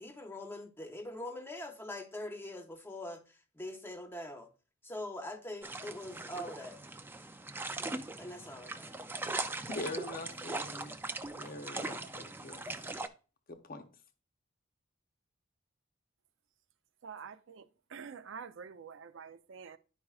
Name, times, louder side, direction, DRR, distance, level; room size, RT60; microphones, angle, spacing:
voice 1, 0.0-4.5 4.8-6.8 8.2-8.9, left 1 dB, 10° left, 0.8 m, -43 dB
sound 1, 5.6-13.1, right 2 dB, 10° right, 0.4 m, -40 dB
voice 2, 9.7-11.0 11.3-12.6 13.5-13.9, left 2 dB, 45° left, 0.8 m, -43 dB
voice 3, 17.0-19.8, right 6 dB, 65° right, 0.5 m, -47 dB
11.0 x 4.7 x 2.4 m
head